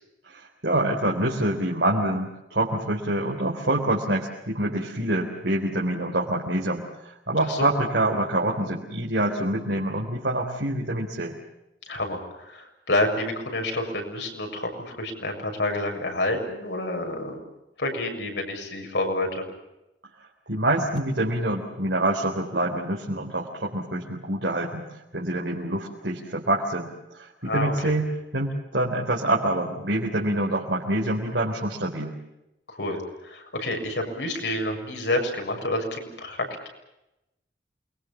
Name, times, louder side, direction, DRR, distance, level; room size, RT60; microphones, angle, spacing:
voice 1, 0.2-11.4 20.5-28.1 28.3-32.1, right 1 dB, 70° right, -2 dB, 3.7 m, -26 dB
voice 2, 7.4-7.7 11.9-17.4 17.8-19.5 27.4-27.9 32.7-36.7, left 1 dB, 75° left, 3 dB, 7.0 m, -29 dB
28.5 x 22.5 x 7.2 m, 0.90 s
head